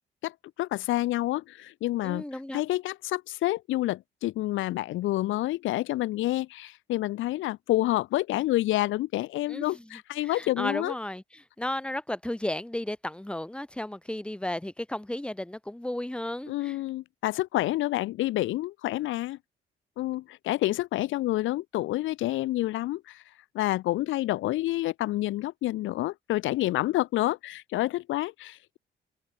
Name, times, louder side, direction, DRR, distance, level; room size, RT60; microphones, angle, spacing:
voice 1, 0.2-2.2 2.5-10.9 16.5-19.4 20.0-23.2 23.5-28.8, left 16 dB, 80° left, 0.5 m, -28 dB
voice 2, 2.0-2.6 9.5-16.8, left 1 dB, 5° left, 1.3 m, -34 dB
open air
cardioid pair, 90°, 20 cm